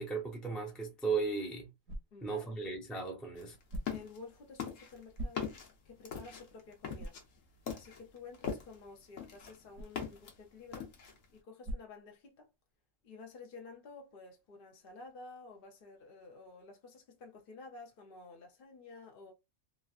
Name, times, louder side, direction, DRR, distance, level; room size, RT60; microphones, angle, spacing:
voice 1, 0.0-1.7 2.2-3.6, right 4 dB, ahead, 0.5 m, -36 dB
sound 1, 1.1-12.7, right 1 dB, 70° right, 1.0 m, -49 dB
voice 2, 2.1-2.6 3.9-5.5 5.8-7.2 7.7-10.9 11.3-12.5 13.0-19.3, left 3 dB, 55° left, 0.7 m, -52 dB
sound 2, 3.4-4.2 4.6-8.8 9.2-10.3 10.7-11.2, left 7 dB, 75° left, 1.2 m, -41 dB
3.1 x 2.4 x 2.4 m
omnidirectional pair, 1.4 m